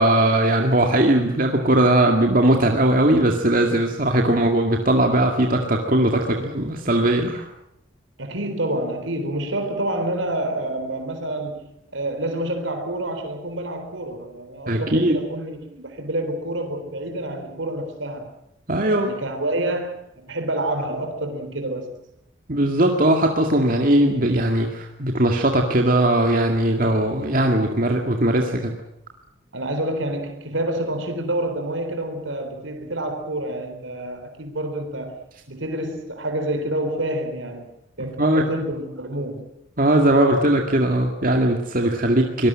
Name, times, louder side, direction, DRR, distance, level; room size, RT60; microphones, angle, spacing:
voice 1, 0.0-7.5 14.7-15.2 18.7-19.1 22.5-28.7 38.0-38.5 39.8-42.5, right 1 dB, 45° right, 3 dB, 2.1 m, -19 dB
voice 2, 8.2-18.3 18.8-21.9 29.5-35.2 35.5-37.6 38.0-39.5, right 1 dB, 80° right, 6 dB, 3.8 m, -28 dB
25.0 x 19.5 x 7.6 m, 0.81 s
head